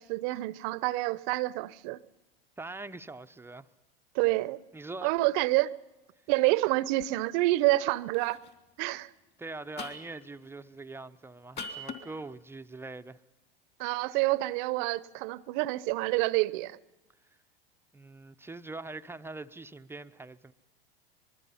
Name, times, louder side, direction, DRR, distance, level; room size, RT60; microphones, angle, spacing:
voice 1, 0.0-2.0 4.1-4.6 5.0-5.7 6.3-8.4 8.8-9.1 13.8-16.8, right 19 dB, 55° right, 0.8 m, -28 dB
voice 2, 2.6-3.7 4.7-5.1 9.4-13.2 14.1-14.2 17.3-17.4 17.9-20.5, right 3 dB, 10° right, 0.7 m, -43 dB
sound 1, 7.7-7.9 8.1-8.5 9.8-10.2 11.6-12.0, left 3 dB, 35° left, 2.8 m, -40 dB
26.0 x 21.0 x 5.6 m
hypercardioid pair, 90°, 30 cm